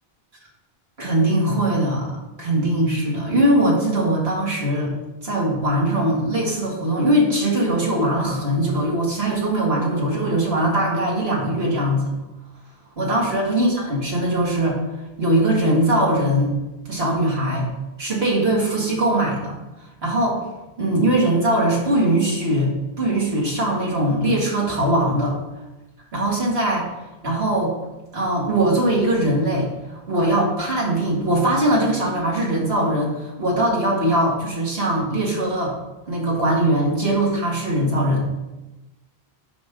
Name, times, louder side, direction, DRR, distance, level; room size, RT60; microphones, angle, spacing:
voice 1, 1.0-2.1 2.4-4.9 5.2-12.1 13.0-14.8 15.2-16.5 16.9-17.7 18.0-19.5 20.0-20.4 20.8-22.7 23.0-25.4 26.1-26.9 27.2-27.7 28.1-29.7 30.1-35.7 36.1-38.3, right 1 dB, 80° right, -3 dB, 2.5 m, -21 dB
11.5 x 5.3 x 3.8 m, 1.0 s
omnidirectional pair, 1.0 m